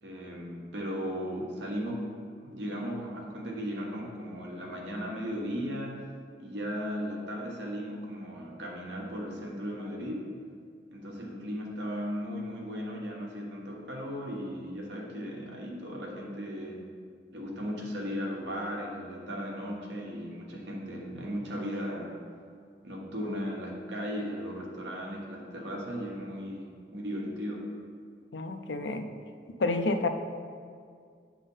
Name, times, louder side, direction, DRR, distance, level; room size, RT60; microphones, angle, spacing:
voice 1, 0.0-2.1 2.4-6.0 6.4-10.3 10.9-16.8 17.3-22.2 22.8-27.6, equal, 80° right, -2 dB, 1.3 m, -36 dB
voice 2, 28.3-29.1 29.6-30.1, left 3 dB, 80° left, 7 dB, 0.5 m, -29 dB
8.3 x 3.7 x 5.5 m, 2.2 s
head